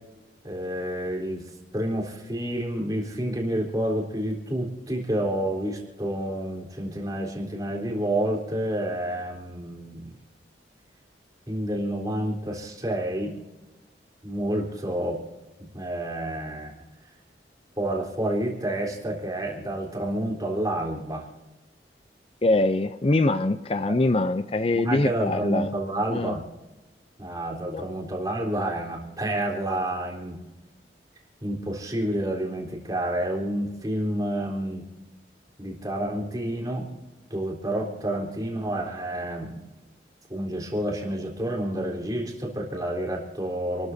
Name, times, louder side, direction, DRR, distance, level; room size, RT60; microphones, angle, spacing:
voice 1, 0.4-1.4 1.7-10.1 11.5-13.3 14.2-15.2 15.6-16.7 17.8-21.3 23.9-24.0 24.7-26.4 27.2-30.4 31.4-34.9 35.6-36.9 37.3-39.6 40.3-43.9, right 1 dB, 20° right, 0 dB, 3.7 m, -29 dB
voice 2, 22.4-25.7 26.1-26.4 27.7-27.8, left 2 dB, 35° left, 10 dB, 0.5 m, -23 dB
29.0 x 13.5 x 2.7 m, 1.1 s
head